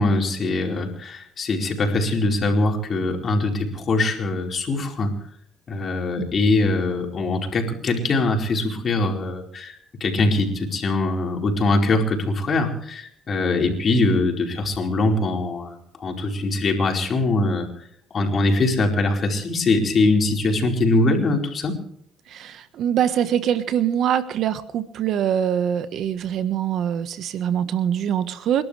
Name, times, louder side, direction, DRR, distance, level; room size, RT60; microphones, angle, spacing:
voice 1, 0.0-5.2 5.7-17.7 18.1-21.8, left 2 dB, 40° left, 1 dB, 4.7 m, -22 dB
voice 2, 22.3-28.6, right 9 dB, 65° right, 12 dB, 1.3 m, -23 dB
28.5 x 12.0 x 3.4 m, 0.70 s
supercardioid pair, 90°, 0 cm